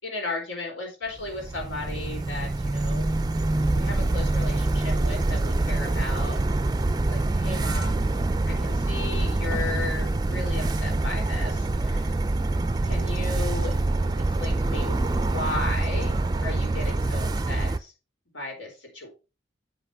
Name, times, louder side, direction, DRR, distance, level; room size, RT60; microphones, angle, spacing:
voice 1, 0.0-3.1 3.7-6.4 7.1-8.1 8.5-12.1 12.8-13.7 14.4-17.9 18.3-19.1, left 2 dB, 85° left, 1 dB, 3.7 m, -35 dB
sound 1, 1.2-17.8, right 2 dB, 20° right, 0.4 m, -25 dB
8.0 x 5.7 x 4.8 m, 0.31 s
head